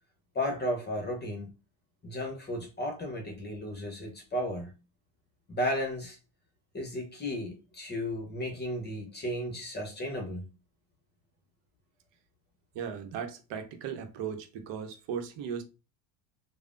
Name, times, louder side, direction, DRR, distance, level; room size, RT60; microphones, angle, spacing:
voice 1, 0.3-1.5 2.0-4.7 5.5-6.2 6.7-10.5, left 1 dB, 20° left, 0.8 m, -34 dB
voice 2, 12.7-15.6, right 7 dB, 60° right, 0.8 m, -37 dB
3.2 x 2.1 x 2.5 m
supercardioid pair, 100°, 49 cm